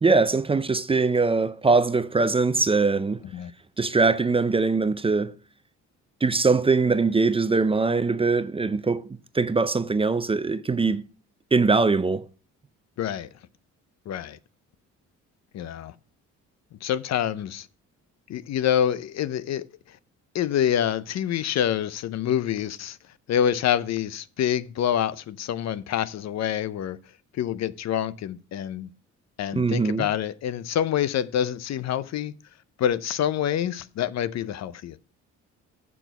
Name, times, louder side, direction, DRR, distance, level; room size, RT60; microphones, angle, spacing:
voice 1, 0.0-3.2 3.8-5.3 6.2-9.1 9.3-11.0 11.5-12.3 29.5-30.1, right 4 dB, 20° right, 0.5 m, -22 dB
voice 2, 13.0-13.3 14.1-14.4 15.5-15.9 16.8-17.7 18.3-19.7 20.3-23.0 23.3-27.0 27.3-28.9 29.4-32.3 32.8-35.0, left 10 dB, 60° left, 0.6 m, -26 dB
7.0 x 6.1 x 5.9 m
cardioid pair, 90°, 30 cm